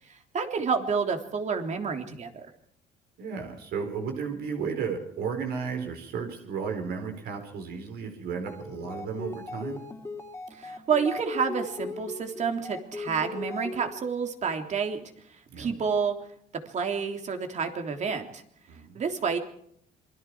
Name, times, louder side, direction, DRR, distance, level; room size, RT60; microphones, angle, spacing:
voice 1, 0.1-2.5 10.5-15.0 15.3-16.2 16.5-18.4 19.0-19.4, right 6 dB, 45° right, 5 dB, 3.4 m, -29 dB
voice 2, 3.2-9.8 15.5-15.7 18.7-19.0, right 6 dB, 70° right, 5 dB, 4.4 m, -34 dB
sound 1, 8.3-14.1, left 3 dB, 15° left, 3.5 m, -38 dB
27.0 x 22.0 x 4.8 m, 0.67 s
cardioid pair, 110°, 17 cm